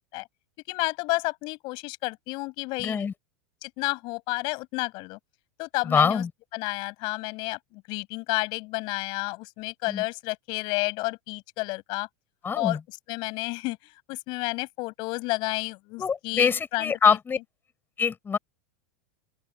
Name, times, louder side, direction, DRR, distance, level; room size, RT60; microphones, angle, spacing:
voice 1, 0.7-3.1 3.6-5.2 5.6-6.2 6.5-12.1 12.6-12.8 13.1-13.8 14.1-17.2, left 24 dB, 55° left, 7.6 m, -31 dB
voice 2, 2.8-3.1 5.8-6.3 9.9-10.0 12.4-12.8 16.0-17.4 18.0-18.4, left 6 dB, 20° left, 6.3 m, -24 dB
open air
hypercardioid pair, 105°, 9 cm